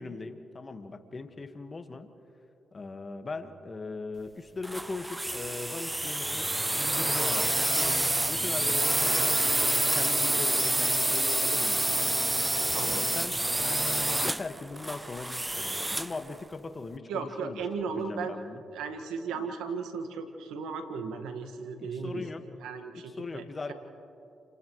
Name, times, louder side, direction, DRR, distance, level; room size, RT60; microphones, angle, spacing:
voice 1, 0.0-2.1 2.7-6.5 6.8-7.6 8.3-12.2 12.8-13.4 14.2-18.6 19.3-19.5 21.8-22.4 22.9-23.7, left 3 dB, 40° left, 7 dB, 1.7 m, -40 dB
sound 1, 4.6-16.2, right 1 dB, 15° right, 0.4 m, -28 dB
voice 2, 17.1-18.4 18.7-22.2 22.6-23.7, right 5 dB, 85° right, 6 dB, 1.7 m, -36 dB
30.0 x 29.0 x 3.2 m, 2.9 s
supercardioid pair, 50°, 0 cm